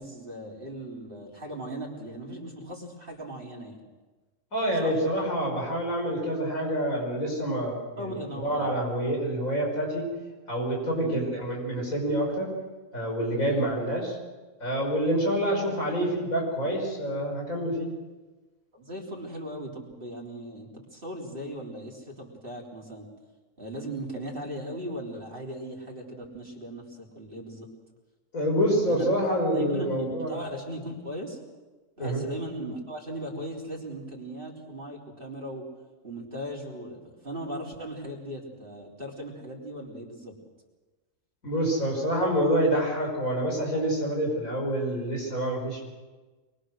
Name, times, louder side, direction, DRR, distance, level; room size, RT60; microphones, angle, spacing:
voice 1, 0.0-3.8 4.8-5.0 8.0-8.7 11.0-11.2 13.4-13.7 18.7-23.1 23.6-27.7 28.9-29.1 29.5-31.4 32.0-35.7 36.0-40.4, right 1 dB, 40° right, -1 dB, 3.9 m, -38 dB
voice 2, 4.5-10.0 10.5-12.5 12.9-14.1 14.6-17.9 28.3-30.4 32.0-32.2 41.4-45.8, equal, 80° left, 0 dB, 6.3 m, -27 dB
24.0 x 22.5 x 6.5 m, 1.2 s
omnidirectional pair, 1.4 m